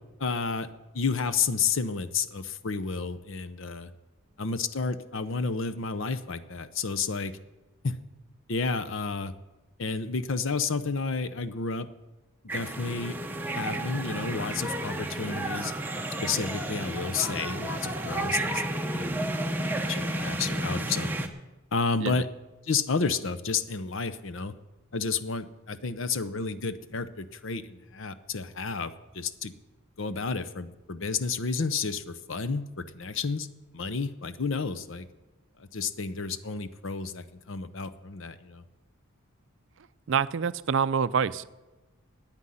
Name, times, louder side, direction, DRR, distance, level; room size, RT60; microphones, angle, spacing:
voice 1, 0.2-0.7 0.9-3.9 4.4-7.4 7.8-8.0 8.5-9.3 9.8-11.9 12.5-13.2 13.6-15.7 16.2-21.3 21.7-22.3 22.6-24.5 24.9-29.5 30.0-33.5 33.7-35.1 35.6-38.6, left 4 dB, 60° left, 12 dB, 0.7 m, -31 dB
sound 1, 12.5-21.3, right 1 dB, 10° right, 0.8 m, -32 dB
voice 2, 40.1-41.5, right 6 dB, 60° right, 16 dB, 0.4 m, -26 dB
9.6 x 9.0 x 9.9 m, 1.1 s
head